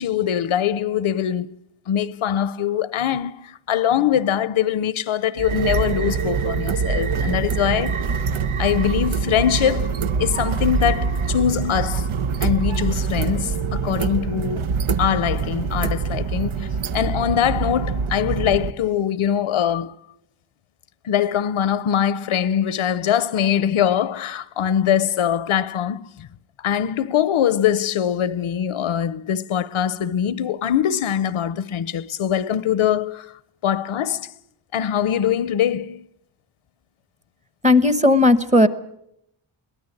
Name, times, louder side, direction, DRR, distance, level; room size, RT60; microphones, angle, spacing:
voice 1, 0.0-1.5 1.9-8.0 8.6-9.9 10.2-12.1 12.4-14.7 15.0-16.7 16.9-20.0 21.0-26.3 26.6-33.3 33.6-34.3 34.7-36.0, left 9 dB, 80° left, 0.8 m, -22 dB
sound 1, 5.4-18.7, right 5 dB, 75° right, 1.0 m, -24 dB
voice 2, 37.6-38.7, left 2 dB, 15° right, 0.9 m, -15 dB
22.5 x 18.5 x 8.0 m
wide cardioid pair, 160°, 49 cm